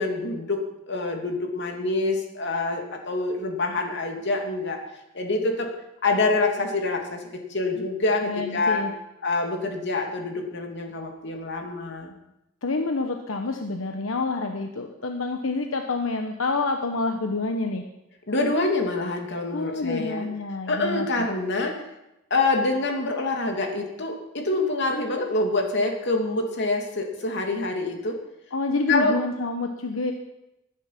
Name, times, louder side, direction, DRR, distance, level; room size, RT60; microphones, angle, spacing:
voice 1, 0.0-4.8 5.1-5.7 6.0-7.2 7.5-8.8 9.2-12.1 18.3-20.3 20.7-21.8 22.3-28.2 28.9-29.2, left 2 dB, 60° left, 3 dB, 2.8 m, -26 dB
voice 2, 8.2-8.9 12.6-17.8 19.5-21.1 28.5-30.1, left 3 dB, 90° left, 5 dB, 1.1 m, -27 dB
19.5 x 10.5 x 6.0 m, 0.90 s
head